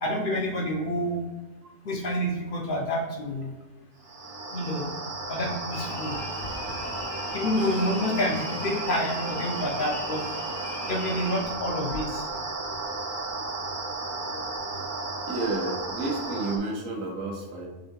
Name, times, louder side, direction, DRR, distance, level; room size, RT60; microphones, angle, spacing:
voice 1, 0.0-1.3 1.9-3.5 4.5-4.9 5.3-6.2 7.3-10.2 10.9-12.2, left 1 dB, 55° left, 0 dB, 0.7 m, -28 dB
sound 1, 4.0-16.6, right 3 dB, 50° right, 0.8 m, -34 dB
sound 2, 5.7-11.4, left 4 dB, 85° left, 1.0 m, -41 dB
voice 2, 15.2-17.7, right 2 dB, 85° right, 0 dB, 1.3 m, -31 dB
5.5 x 3.4 x 2.8 m, 1.2 s
omnidirectional pair, 1.3 m